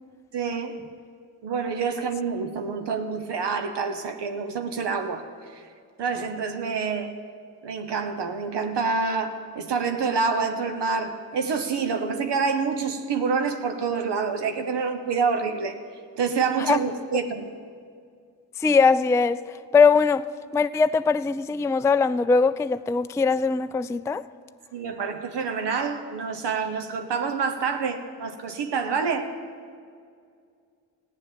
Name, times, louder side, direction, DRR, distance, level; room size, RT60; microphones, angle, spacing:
voice 1, 0.3-0.8 1.4-5.2 5.5-5.6 6.0-7.1 7.6-15.8 16.2-17.5 24.7-29.3, right 5 dB, 70° right, 1.2 m, -27 dB
voice 2, 18.6-20.3 20.5-24.2, left 5 dB, 10° left, 0.3 m, -21 dB
14.5 x 9.4 x 8.7 m
supercardioid pair, 45°, 43 cm